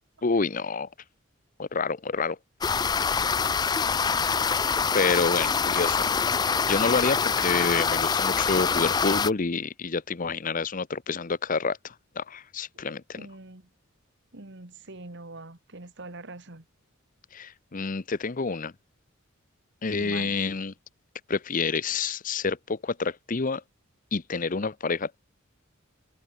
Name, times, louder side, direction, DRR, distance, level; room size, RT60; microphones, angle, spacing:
voice 1, 0.2-0.9 1.6-2.4 4.9-6.1 6.5-13.3 17.3-18.7 19.8-20.7 21.3-23.6 24.1-25.2, left 4 dB, 40° left, 0.7 m, -28 dB
sound 1, 2.6-9.3, left 6 dB, 20° left, 0.3 m, -25 dB
voice 2, 13.2-13.6 14.3-16.6 19.9-20.3, right 2 dB, 55° right, 2.2 m, -43 dB
head